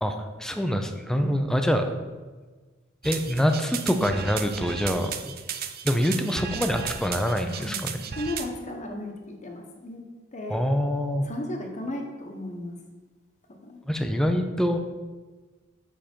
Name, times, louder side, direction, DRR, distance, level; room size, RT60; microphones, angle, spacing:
voice 1, 0.0-1.9 3.0-5.3 5.8-8.0 10.5-11.3 13.9-14.8, equal, 5° left, 6 dB, 0.5 m, -25 dB
sound 1, 3.0-8.5, right 7 dB, 45° right, 0.5 m, -35 dB
voice 2, 7.5-7.8 8.1-10.0 10.3-10.7 11.2-12.8 13.6-13.8, left 1 dB, 35° left, 2 dB, 1.1 m, -35 dB
7.4 x 5.1 x 4.4 m, 1.3 s
head